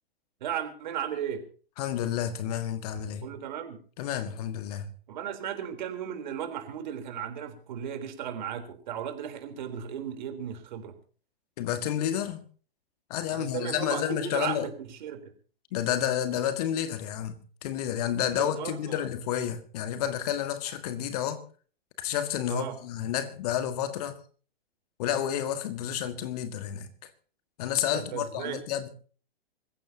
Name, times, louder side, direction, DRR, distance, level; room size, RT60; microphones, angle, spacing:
voice 1, 0.4-1.4 3.2-3.8 5.1-10.9 13.3-15.3 18.4-19.1 22.5-22.8 27.9-28.6, right 9 dB, 45° right, 3.8 m, -35 dB
voice 2, 1.8-3.3 4.0-4.9 11.6-12.4 13.1-14.7 15.7-21.4 22.0-24.2 25.0-26.9 27.6-28.9, left 10 dB, 40° left, 1.9 m, -30 dB
25.5 x 15.5 x 2.9 m
figure-of-eight pair, 115°, 31 cm